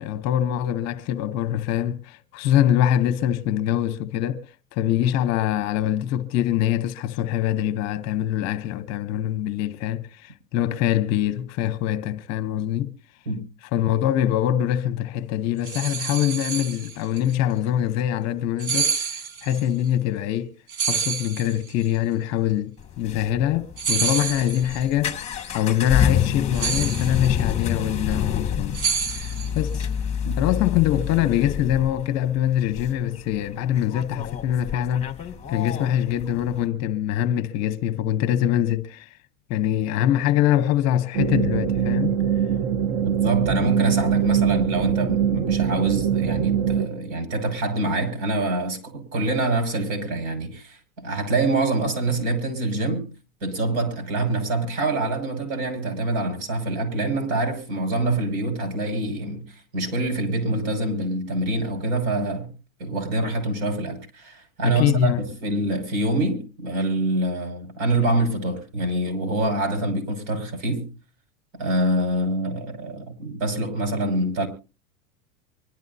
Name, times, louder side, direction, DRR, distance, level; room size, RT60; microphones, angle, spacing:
voice 1, 0.0-4.4 4.7-12.9 13.7-20.5 20.9-25.3 25.5-28.8 29.1-29.9 30.4-35.1 35.5-39.1 39.5-42.1 64.6-65.2, left 11 dB, 40° left, 1.0 m, -24 dB
sound 1, 15.6-17.2 18.6-19.6 20.7-21.8 23.8-24.8 26.5-27.5 28.7-29.8, right 6 dB, 85° right, 2.0 m, -27 dB
sound 2, 22.8-36.6, left 8 dB, 15° left, 1.9 m, -28 dB
sound 3, 41.1-46.9, right 8 dB, 35° right, 0.8 m, -22 dB
voice 2, 43.0-53.1 53.4-62.5 62.8-70.9 71.5-74.5, right 2 dB, 65° right, 5.7 m, -25 dB
24.5 x 12.0 x 2.7 m
supercardioid pair, 140°, 41 cm